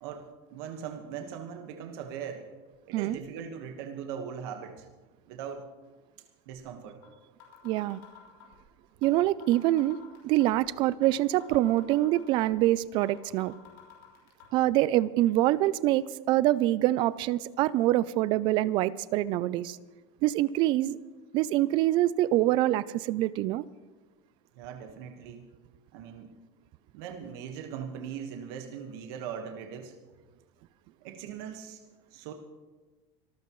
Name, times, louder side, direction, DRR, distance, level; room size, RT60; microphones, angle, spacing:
voice 1, 0.0-2.5 2.9-4.9 5.3-5.7 6.5-7.0 24.6-25.5 25.9-26.3 26.9-29.9 31.0-31.8 32.1-32.3, right 7 dB, 55° right, 1.4 m, -40 dB
sound 1, 7.0-7.1 7.4-8.6 9.0-9.1 9.4-10.6 11.0-11.1 11.4-12.6 13.0-13.1 13.4-14.4, left 9 dB, 55° left, 6.0 m, -51 dB
voice 2, 7.6-8.0 9.0-10.0 10.2-13.5 14.5-19.8 20.2-21.0 21.3-23.6, right 15 dB, 35° right, 0.3 m, -25 dB
25.0 x 14.0 x 3.1 m
supercardioid pair, 175°, 15 cm